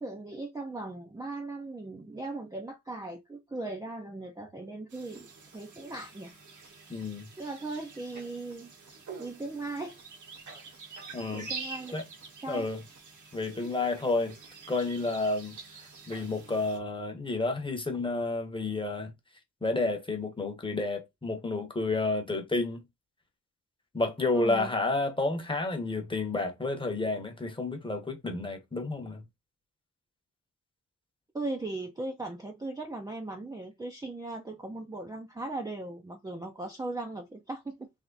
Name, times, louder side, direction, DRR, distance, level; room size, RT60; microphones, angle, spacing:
voice 1, 0.0-6.3 7.4-8.7 9.2-10.0 10.6-10.7 11.3-11.9 12.4-12.7 24.3-24.7 31.3-37.9, right 2 dB, 10° right, 0.5 m, -38 dB
sound 1, 4.9-16.8, right 4 dB, 60° right, 1.2 m, -46 dB
voice 2, 6.9-7.3 11.1-11.5 11.9-12.0 12.5-12.8 13.3-14.4 14.7-15.5 16.1-19.1 19.6-22.8 23.9-29.2, left 3 dB, 15° left, 0.9 m, -30 dB
3.5 x 3.0 x 3.8 m
wide cardioid pair, 170°, 33 cm